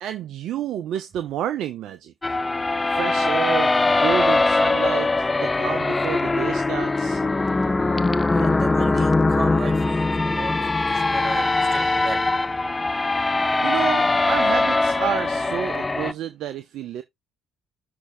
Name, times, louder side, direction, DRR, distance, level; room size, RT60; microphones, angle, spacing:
voice 1, 0.0-2.4 2.9-3.7 4.0-8.0 13.6-17.0, right 10 dB, 60° right, 0.6 m, -30 dB
sound 1, 2.2-16.1, left 3 dB, 20° left, 0.5 m, -21 dB
voice 2, 7.6-8.0 8.3-12.2 12.5-12.6, right 5 dB, 40° right, 2.0 m, -36 dB
6.3 x 3.3 x 5.2 m
figure-of-eight pair, 50°, 0 cm